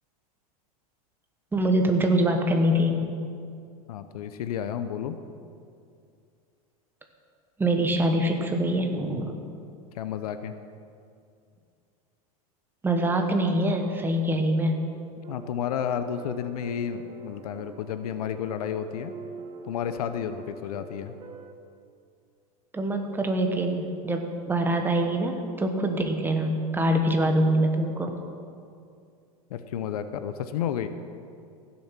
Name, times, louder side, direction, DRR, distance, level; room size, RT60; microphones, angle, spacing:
voice 1, 1.5-3.1 7.6-9.3 12.8-14.8 22.7-28.1, right 1 dB, 10° right, 4 dB, 1.3 m, -24 dB
voice 2, 3.9-5.2 9.9-10.5 15.3-19.1 19.7-21.1 29.5-30.9, left 9 dB, 80° left, 10 dB, 0.7 m, -31 dB
sound 1, 12.8-21.5, right 4 dB, 30° right, 1.0 m, -44 dB
15.5 x 7.1 x 5.9 m, 2.4 s
supercardioid pair, 120°, 19 cm